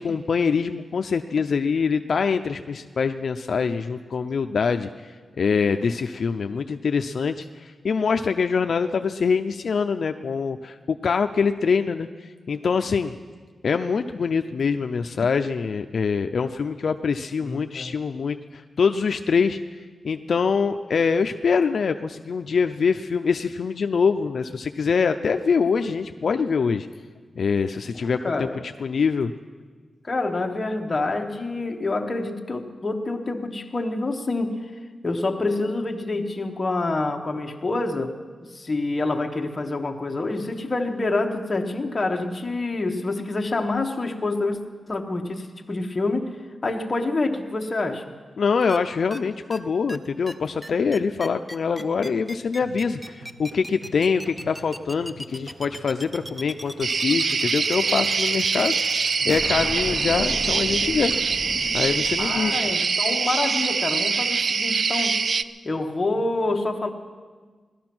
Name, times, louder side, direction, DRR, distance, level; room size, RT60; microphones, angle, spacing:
voice 1, 0.0-5.1 5.4-13.1 13.6-19.6 20.0-26.9 27.4-28.5 28.8-29.3 48.4-61.1 61.7-62.6, left 5 dB, 60° left, 7 dB, 0.5 m, -24 dB
voice 2, 17.4-17.9 27.9-28.6 30.0-34.7 35.0-44.6 44.9-46.4 46.6-48.0 62.2-65.3 65.6-66.9, left 2 dB, 25° left, 2 dB, 1.2 m, -27 dB
sound 1, 48.7-48.8 49.1-49.2 49.5-49.6 49.9-50.0 50.3-50.4 50.6-62.7, equal, 5° right, 0.7 m, -36 dB
sound 2, 52.6-62.5, right 2 dB, 75° right, 1.4 m, -48 dB
sound 3, 56.8-65.4, right 5 dB, 55° right, 0.4 m, -24 dB
18.0 x 12.5 x 6.1 m, 1.5 s
wide cardioid pair, 160°, 0 cm